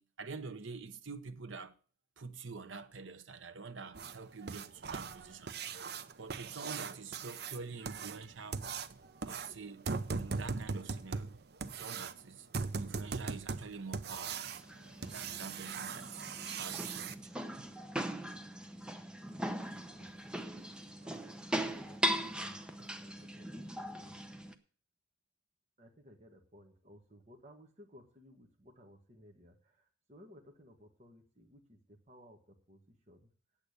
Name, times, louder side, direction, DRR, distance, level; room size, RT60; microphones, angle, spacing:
voice 1, 0.0-1.7 2.2-5.5 6.2-8.6 9.2-9.9 10.2-11.3 11.8-12.5 12.8-14.5 15.1-16.2 16.5-17.7, right 4 dB, 80° right, 0.9 m, -46 dB
tcr sound scape hcfr marie nora, 3.9-17.1 19.5-19.6 20.0-20.1 20.6-20.7 21.1-21.2 21.7-21.9 22.2-22.3 22.8-22.9, right 4 dB, 55° right, 0.7 m, -40 dB
sound 1, 14.2-24.5, right 1 dB, 5° right, 0.8 m, -40 dB
voice 2, 21.0-22.6 23.0-24.2 25.8-33.3, equal, 35° right, 1.6 m, -59 dB
8.7 x 8.2 x 8.1 m
head